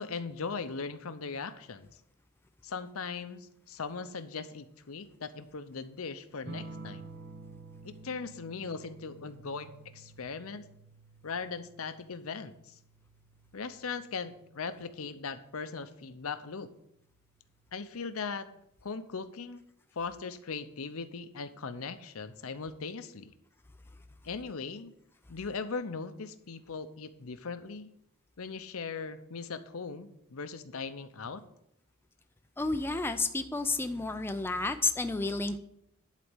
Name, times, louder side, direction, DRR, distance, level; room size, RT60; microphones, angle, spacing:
voice 1, 0.0-1.9 2.6-7.1 7.8-10.7 11.2-12.8 13.5-16.7 17.7-18.5 18.8-19.6 19.9-23.3 24.2-24.9 25.3-27.9 28.4-31.4, left 5 dB, 70° left, 11 dB, 0.7 m, -39 dB
sound 1, 6.5-15.5 17.0-17.5, right 3 dB, 50° right, 1.0 m, -51 dB
voice 2, 32.6-35.6, left 3 dB, 10° left, 7 dB, 0.4 m, -31 dB
11.0 x 4.2 x 7.9 m, 0.78 s
head